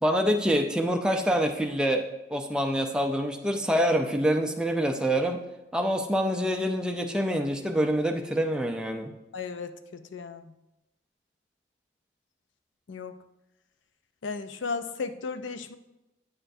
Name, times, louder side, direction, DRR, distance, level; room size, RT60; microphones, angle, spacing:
voice 1, 0.0-5.4 5.7-9.1, equal, 5° right, 3 dB, 0.5 m, -26 dB
voice 2, 9.3-10.5 12.9-13.2 14.2-15.8, left 4 dB, 85° left, 10 dB, 0.5 m, -35 dB
8.7 x 6.8 x 2.7 m, 0.94 s
head